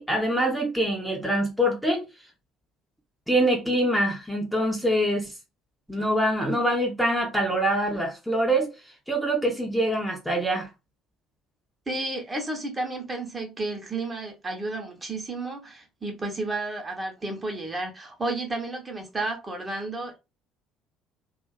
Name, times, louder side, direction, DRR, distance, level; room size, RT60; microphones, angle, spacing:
voice 1, 0.0-2.0 3.3-5.3 5.9-8.7 9.1-10.7, right 1 dB, ahead, 0.8 m, -24 dB
voice 2, 11.9-20.2, right 2 dB, 25° right, 1.0 m, -32 dB
2.7 x 2.4 x 2.4 m
figure-of-eight pair, 55°, 0 cm